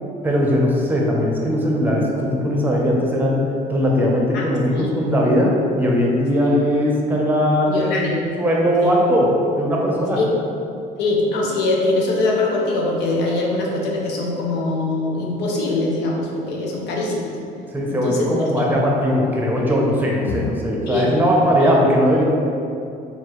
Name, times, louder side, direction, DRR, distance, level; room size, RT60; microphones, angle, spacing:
voice 1, 0.2-3.4 3.7-8.1 8.4-10.2 17.7-22.2, equal, 10° right, -2 dB, 0.7 m, -19 dB
voice 2, 7.7-8.3 8.8-8.9 10.2-10.3 11.0-17.4 17.9-18.7 20.3-20.4 20.9-21.1 21.6-21.7, left 2 dB, 90° left, -2 dB, 0.7 m, -22 dB
4.4 x 2.7 x 3.1 m, 2.6 s
cardioid pair, 110°, 17 cm